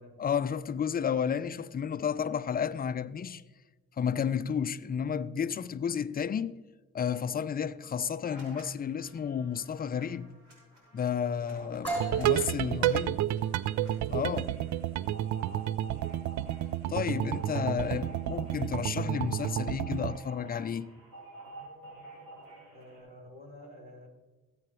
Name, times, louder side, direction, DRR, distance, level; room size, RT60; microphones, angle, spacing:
voice 1, 0.2-3.4 4.0-6.6 6.9-10.3 10.9-13.2 14.1-14.6 16.9-20.9, left 7 dB, 30° left, 0.5 m, -32 dB
sound 1, 8.2-8.6 8.9-23.0, right 2 dB, 85° right, 3.7 m, -50 dB
voice 2, 11.3-12.3 12.6-12.8 17.8-18.2 22.7-24.1, left 1 dB, 30° right, 3.7 m, -51 dB
sound 2, 11.8-19.5, right 2 dB, 5° left, 3.5 m, -42 dB
sound 3, 12.0-20.2, right 12 dB, 70° right, 0.5 m, -31 dB
17.0 x 7.8 x 3.2 m
cardioid pair, 75°, 30 cm